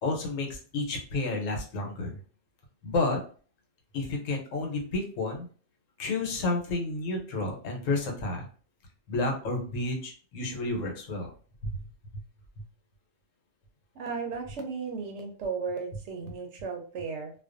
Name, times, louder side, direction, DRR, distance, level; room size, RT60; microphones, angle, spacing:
voice 1, 0.0-2.2 2.8-3.2 3.9-5.5 6.0-8.5 9.1-11.3 11.6-11.8, left 2 dB, 80° left, 1 dB, 1.1 m, -31 dB
voice 2, 14.0-17.3, right 5 dB, 70° right, 3 dB, 0.8 m, -35 dB
2.4 x 2.2 x 2.4 m, 0.40 s
omnidirectional pair, 1.4 m